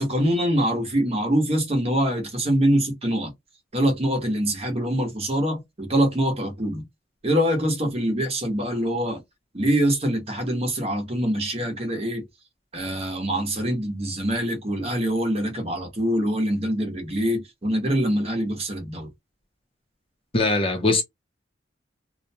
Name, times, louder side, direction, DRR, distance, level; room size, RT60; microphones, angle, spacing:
voice 1, 0.0-3.3 3.7-6.9 7.2-9.2 9.5-12.2 12.7-19.1, equal, 35° right, 0.9 m, -24 dB
voice 2, 20.3-21.0, left 3 dB, 30° left, 0.5 m, -21 dB
2.5 x 2.1 x 2.7 m
head